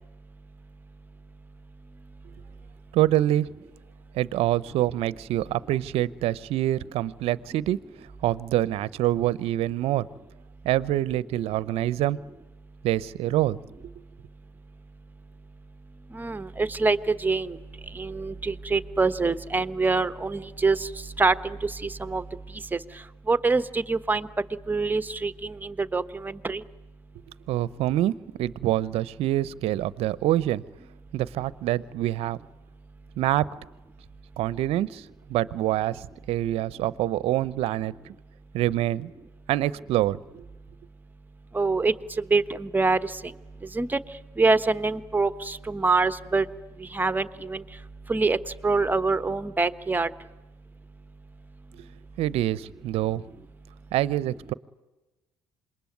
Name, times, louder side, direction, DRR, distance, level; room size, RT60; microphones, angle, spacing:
voice 1, 2.9-3.5 4.1-7.8 8.2-10.1 10.6-12.2 12.8-13.6 27.5-28.1 28.4-30.6 31.1-32.4 33.2-33.5 34.4-38.1 38.5-39.1 39.5-40.5 51.7-51.8 52.2-53.2 53.9-54.5, right 14 dB, 65° right, 0.8 m, -26 dB
voice 2, 16.1-17.6 17.9-20.9 21.2-22.2 22.7-22.8 23.3-24.3 24.7-26.6 41.5-41.9 42.3-43.1 43.7-44.0 44.4-46.4 46.8-47.6 48.1-48.4 48.6-50.1, right 3 dB, 15° right, 1.2 m, -25 dB
27.0 x 22.0 x 9.4 m
hypercardioid pair, 65°, 11 cm